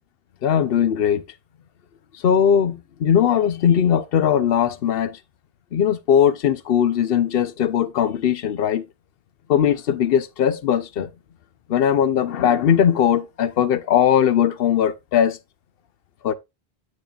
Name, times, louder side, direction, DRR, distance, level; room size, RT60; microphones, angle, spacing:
voice 1, 0.4-1.2 2.2-5.2 5.7-8.9 9.5-11.1 11.7-15.4 16.2-16.3, left 9 dB, 65° left, 0.9 m, -19 dB
8.6 x 6.4 x 2.4 m
omnidirectional pair, 1.1 m